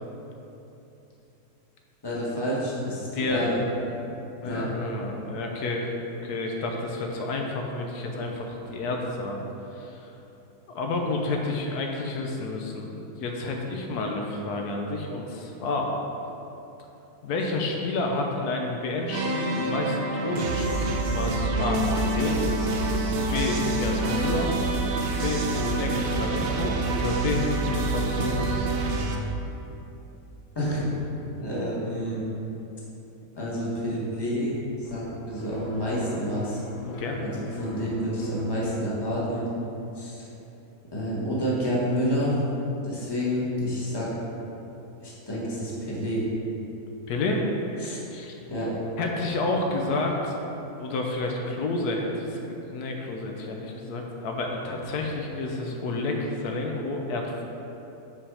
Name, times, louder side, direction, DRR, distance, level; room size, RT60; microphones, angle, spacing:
voice 1, 2.0-3.6 4.4-4.7 30.5-30.8 31.4-32.2 33.4-34.5 34.8-36.6 37.2-39.5 39.9-40.2 40.9-42.3 42.8-44.1 45.0-46.2 47.8-48.0 48.5-48.7, equal, 15° left, -7 dB, 1.3 m, -29 dB
voice 2, 3.0-3.6 4.4-9.5 9.8-10.1 10.7-15.9 17.2-22.4 23.3-24.5 25.1-28.5 36.8-37.2 47.1-47.4 48.1-48.3 49.0-50.3 50.8-57.4, left 2 dB, 85° left, 1 dB, 1.2 m, -30 dB
sound 1, 19.1-29.2, right 1 dB, 85° right, 1.4 m, -29 dB
sound 2, 20.3-29.2, right 4 dB, 65° right, 0.9 m, -30 dB
sound 3, 34.8-38.7, left 1 dB, 60° left, 1.1 m, -42 dB
5.6 x 4.8 x 4.8 m, 3.0 s
omnidirectional pair, 1.6 m